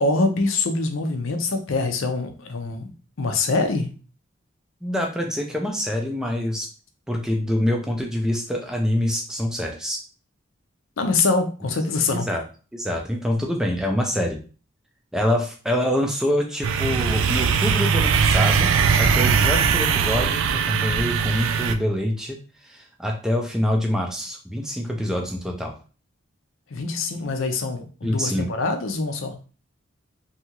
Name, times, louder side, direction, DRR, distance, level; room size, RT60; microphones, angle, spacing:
voice 1, 0.0-2.9 3.2-3.9 11.0-12.3 26.7-29.3, left 3 dB, 80° left, 5 dB, 0.6 m, -24 dB
voice 2, 4.8-6.7 7.1-10.0 12.1-12.4 12.7-14.4 15.1-25.7 28.0-28.5, equal, 5° right, 2 dB, 0.3 m, -25 dB
sound 1, 16.6-21.8, right 6 dB, 80° right, 0.3 m, -20 dB
2.8 x 2.4 x 2.8 m, 0.37 s
head